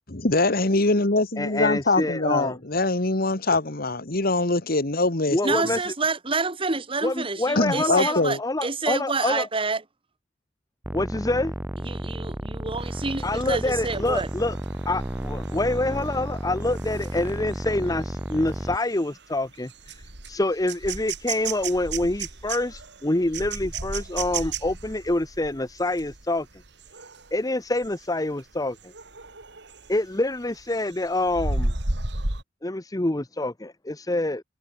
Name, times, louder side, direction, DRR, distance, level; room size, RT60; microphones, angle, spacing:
voice 1, 0.1-5.4 7.6-8.4, left 2 dB, 55° left, 2.1 m, -23 dB
voice 2, 1.4-2.6 5.3-5.8 7.0-9.5 10.9-11.5 13.2-14.6 14.9-26.5 27.3-28.9 29.9-31.7 32.6-34.4, left 2 dB, 20° left, 1.0 m, -26 dB
voice 3, 5.4-9.8 11.8-14.3, right 4 dB, 30° right, 1.6 m, -28 dB
sound 1, 10.8-18.8, equal, 10° right, 1.0 m, -32 dB
sound 2, 12.8-27.3 27.8-28.1 28.4-30.1 30.4-32.4, right 3 dB, 65° right, 3.5 m, -35 dB
head